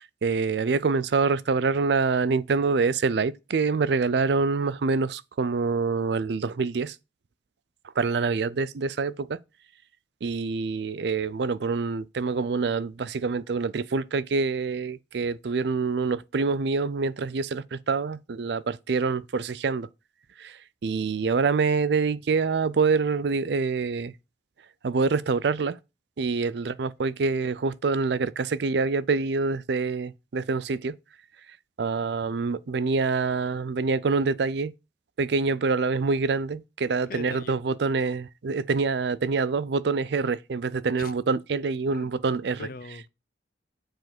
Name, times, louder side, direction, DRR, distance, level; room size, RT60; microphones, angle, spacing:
voice 1, 0.0-7.0 8.0-9.4 10.2-19.9 20.4-24.1 24.8-25.8 26.2-30.9 31.5-34.7 35.2-42.7, right 4 dB, 65° right, 0.4 m, -26 dB
voice 2, 37.1-37.6 41.0-41.1 41.9-42.2 42.6-43.1, left 4 dB, 50° left, 0.6 m, -40 dB
7.7 x 4.7 x 6.0 m
head